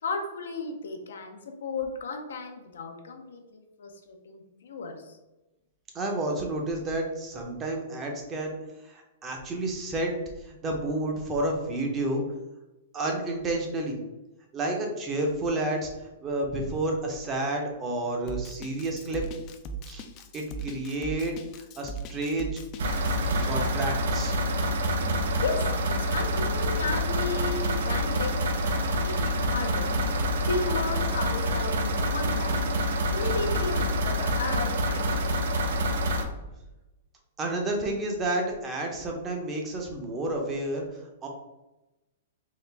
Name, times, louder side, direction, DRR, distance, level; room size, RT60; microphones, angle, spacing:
voice 1, 0.0-5.2 25.4-29.9 30.5-32.6 33.0-35.2, left 3 dB, 85° left, 4 dB, 0.6 m, -34 dB
voice 2, 5.9-8.6 8.8-10.1 10.4-12.2 12.9-14.0 14.5-15.9 16.2-19.2 19.9-20.0 20.3-21.3 21.8-22.5 23.4-24.3 37.4-40.8 41.2-41.3, right 2 dB, 20° right, 1 dB, 0.7 m, -30 dB
Drum kit, 18.3-23.7, right 3 dB, 35° left, 0.3 m, -38 dB
sound 1, 22.8-36.2, equal, 75° right, 0.5 m, -27 dB
3.7 x 2.0 x 3.3 m, 1.0 s
hypercardioid pair, 140°, 0 cm